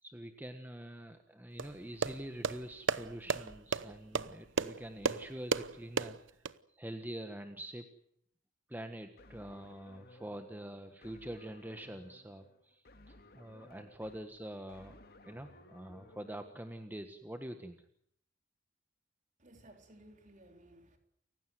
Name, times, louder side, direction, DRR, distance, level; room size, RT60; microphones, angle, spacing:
voice 1, 0.0-6.4 6.7-7.8 8.7-17.8, right 1 dB, 10° right, 1.4 m, -45 dB
sound 1, 1.6-6.5, right 4 dB, 70° right, 0.9 m, -35 dB
sound 2, 9.2-16.5, left 1 dB, 50° left, 2.5 m, -58 dB
voice 2, 19.4-21.0, right 1 dB, 40° right, 3.9 m, -58 dB
29.5 x 16.0 x 9.3 m
head